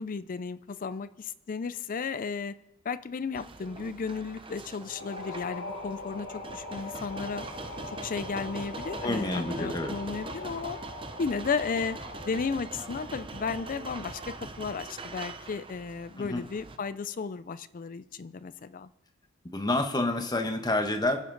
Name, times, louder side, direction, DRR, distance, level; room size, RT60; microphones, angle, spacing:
voice 1, 0.0-2.5 2.8-7.4 8.0-10.8 11.2-12.0 12.2-18.9, left 5 dB, 40° left, 15 dB, 0.4 m, -34 dB
sound 1, 3.3-16.8, right 3 dB, 25° right, 0.7 m, -42 dB
sound 2, 4.8-14.6, left 2 dB, 70° left, 2.6 m, -42 dB
voice 2, 9.0-9.9 16.3-16.4 19.4-21.2, left 2 dB, 20° left, 5 dB, 1.1 m, -28 dB
24.5 x 9.4 x 3.9 m, 0.98 s
head